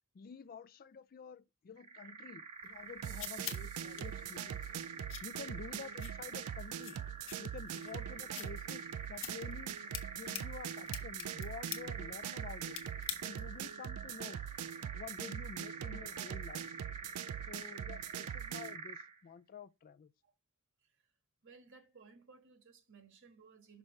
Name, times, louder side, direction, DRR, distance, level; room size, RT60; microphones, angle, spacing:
voice 1, 0.1-4.7 5.2-7.0 7.4-12.8 13.2-14.4 14.9-16.7 17.5-20.1, left 6 dB, 40° left, 0.4 m, -50 dB
sound 1, 1.8-19.2, right 4 dB, 30° right, 0.6 m, -47 dB
sound 2, 2.6-13.6, left 10 dB, 60° left, 0.9 m, -49 dB
sound 3, 3.0-18.8, right 10 dB, 75° right, 0.3 m, -43 dB
voice 2, 21.4-23.8, right 5 dB, 60° right, 1.4 m, -60 dB
6.0 x 5.3 x 3.1 m
head